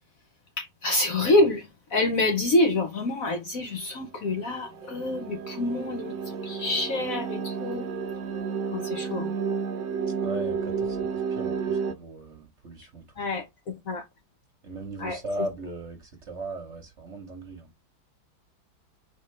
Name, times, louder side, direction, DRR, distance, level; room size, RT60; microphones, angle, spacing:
voice 1, 0.6-7.9 8.7-9.3 13.2-13.4 13.9-14.0 15.0-15.2, left 2 dB, 55° left, 1.1 m, -26 dB
sound 1, 4.2-11.9, right 6 dB, 60° right, 0.9 m, -31 dB
voice 2, 10.2-13.0 14.6-17.7, right 1 dB, 40° right, 1.2 m, -38 dB
4.4 x 3.5 x 3.2 m
omnidirectional pair, 2.1 m